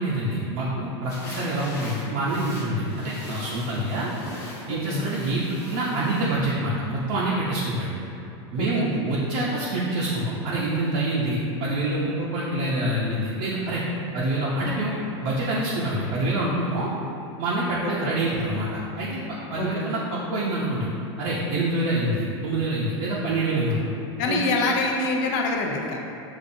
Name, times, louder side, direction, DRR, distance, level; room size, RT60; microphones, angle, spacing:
voice 1, 0.0-4.1 4.7-7.9 8.5-13.8 14.1-16.9 17.4-20.9 21.2-23.9 24.3-24.4, right 1 dB, 50° right, -6 dB, 0.7 m, -26 dB
sound 1, 1.1-6.4, left 1 dB, 20° left, 1.1 m, -41 dB
voice 2, 4.7-5.1 8.6-9.0 12.2-12.3 17.8-18.1 19.6-19.9 23.5-23.6 24.2-26.0, left 3 dB, 50° left, 1 dB, 0.6 m, -26 dB
6.9 x 2.5 x 2.6 m, 2.9 s
supercardioid pair, 145°, 15 cm